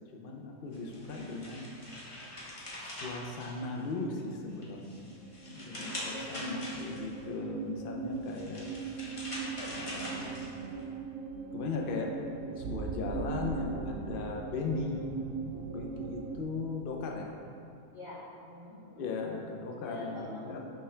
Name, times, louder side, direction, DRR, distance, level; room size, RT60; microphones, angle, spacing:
voice 1, 0.1-1.7 2.8-5.1 5.5-8.7 8.9-9.0 9.6-10.5 11.5-12.1 12.6-17.3 19.0-20.6, left 3 dB, 85° left, 1 dB, 0.4 m, -37 dB
sound 1, 0.7-4.1 4.5-7.2 8.1-10.8, left 1 dB, 25° left, 0.9 m, -43 dB
sound 2, 5.2-16.4, right 5 dB, 70° right, 0.9 m, -40 dB
voice 2, 6.0-6.5 17.9-19.1 19.8-20.6, left 1 dB, 30° right, -11 dB, 1.5 m, -46 dB
5.8 x 5.5 x 3.3 m, 2.4 s
omnidirectional pair, 1.7 m